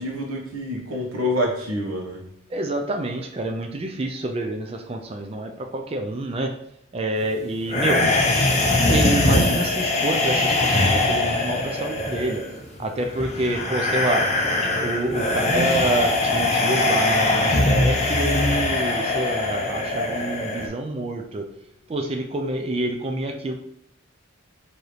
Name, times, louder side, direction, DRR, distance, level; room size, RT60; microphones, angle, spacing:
voice 1, 0.0-2.2, left 1 dB, 85° right, -1 dB, 1.0 m, -27 dB
voice 2, 2.5-6.5 6.9-8.0 8.9-12.4 12.8-14.2 14.7-21.4 21.9-23.5, right 1 dB, 30° right, 3 dB, 0.4 m, -27 dB
sound 1, 7.7-20.7, left 2 dB, 30° left, 0.6 m, -22 dB
4.8 x 2.7 x 3.1 m, 0.73 s
head